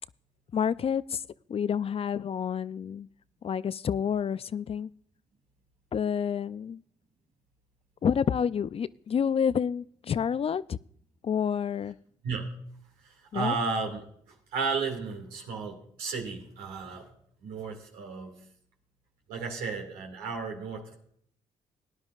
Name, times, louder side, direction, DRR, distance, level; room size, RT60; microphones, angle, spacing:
voice 1, 0.5-1.2 1.5-3.1 3.4-4.9 5.9-6.8 8.0-10.8 11.2-12.0 13.3-13.5, left 7 dB, 40° left, 18 dB, 0.4 m, -29 dB
voice 2, 13.0-14.1 14.5-17.1 17.4-18.3 19.3-21.0, right 4 dB, 90° right, 2 dB, 2.1 m, -33 dB
18.5 x 10.5 x 2.4 m, 0.66 s
supercardioid pair, 60°, 15 cm